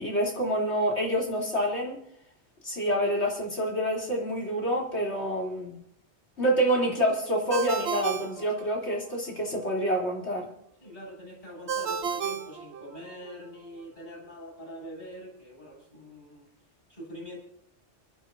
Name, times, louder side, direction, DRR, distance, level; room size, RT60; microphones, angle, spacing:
voice 1, 0.0-2.0 2.6-5.8 6.4-10.5, equal, 75° left, -2 dB, 3.8 m, -27 dB
Ringtone, 7.5-9.2 11.7-13.3, right 6 dB, 70° right, 1.1 m, -32 dB
voice 2, 10.8-16.5 16.9-17.4, equal, 45° left, -3 dB, 7.2 m, -44 dB
30.0 x 12.0 x 2.7 m, 0.67 s
omnidirectional pair, 1.2 m